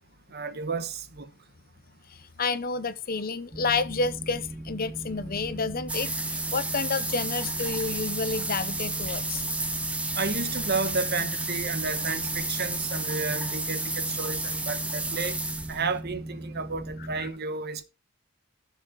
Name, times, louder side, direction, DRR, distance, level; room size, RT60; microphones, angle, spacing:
voice 1, 0.3-1.3 10.2-15.4 15.7-17.8, right 4 dB, 50° right, 1.1 m, -32 dB
voice 2, 2.4-9.4 17.1-17.3, left 4 dB, 45° left, 0.7 m, -30 dB
Boat Water vehicle, 3.5-17.3, right 1 dB, 20° right, 1.3 m, -39 dB
sound 1, 5.9-16.0, right 2 dB, 5° right, 0.8 m, -32 dB
13.0 x 7.0 x 3.7 m
head